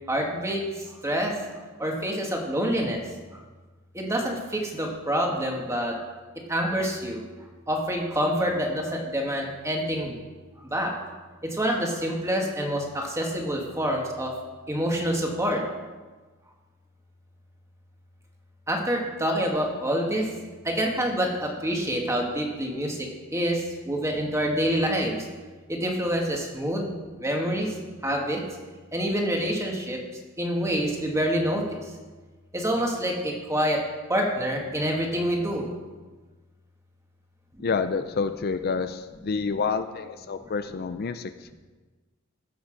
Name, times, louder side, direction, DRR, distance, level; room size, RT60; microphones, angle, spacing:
voice 1, 0.1-3.0 3.9-6.1 6.5-7.2 7.7-10.1 10.7-10.9 11.4-14.3 14.7-15.7 18.7-20.3 20.6-25.2 25.7-27.8 28.0-28.4 28.9-30.0 30.4-31.8 32.5-33.8 34.1-35.7 37.6-37.7, equal, 15° right, 0 dB, 1.8 m, -27 dB
voice 2, 37.6-41.5, left 5 dB, 45° left, 10 dB, 0.4 m, -28 dB
14.5 x 6.0 x 6.5 m, 1.3 s
head